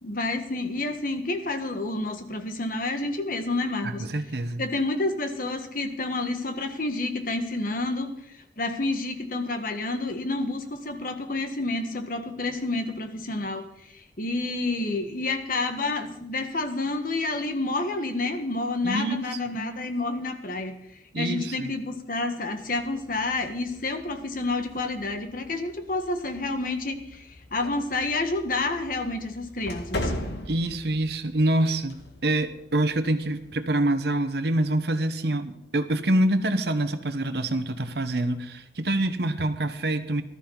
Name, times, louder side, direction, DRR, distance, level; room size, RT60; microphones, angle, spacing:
voice 1, 0.0-4.1 4.6-8.1 8.6-13.6 13.9-20.7 21.2-30.1, left 2 dB, 50° left, 6 dB, 1.6 m, -29 dB
voice 2, 3.8-4.7 18.8-19.4 21.1-21.7 30.5-40.2, right 1 dB, 65° right, 10 dB, 1.1 m, -26 dB
sound 1, 22.6-33.5, left 1 dB, 70° left, 2.1 m, -40 dB
19.0 x 13.0 x 4.0 m, 0.81 s
head